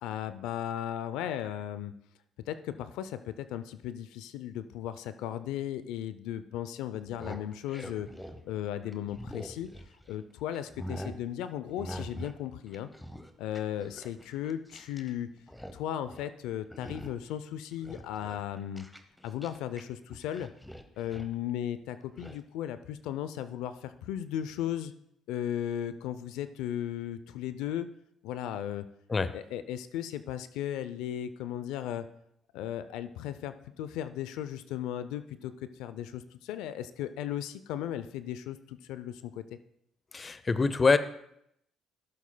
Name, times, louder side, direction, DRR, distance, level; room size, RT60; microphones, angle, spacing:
voice 1, 0.0-1.9 2.5-8.1 8.4-9.7 10.1-12.9 13.4-15.3 15.7-18.8 19.2-20.5 21.0-24.9 25.3-27.9 28.2-28.8 29.3-32.0 32.5-35.5 35.8-39.4, left 11 dB, 85° left, 12 dB, 0.4 m, -36 dB
sound 1, 7.1-10.2 10.5-11.2 11.8-12.4 12.7-15.1 15.4-15.8 16.1-16.3 16.7-17.3 17.7-19.8 20.1-21.3 22.2-22.4, equal, 5° left, 0.8 m, -44 dB
voice 2, 40.1-41.0, left 4 dB, 30° left, 14 dB, 0.5 m, -25 dB
15.0 x 7.3 x 2.2 m, 0.74 s
cardioid pair, 85°, 0 cm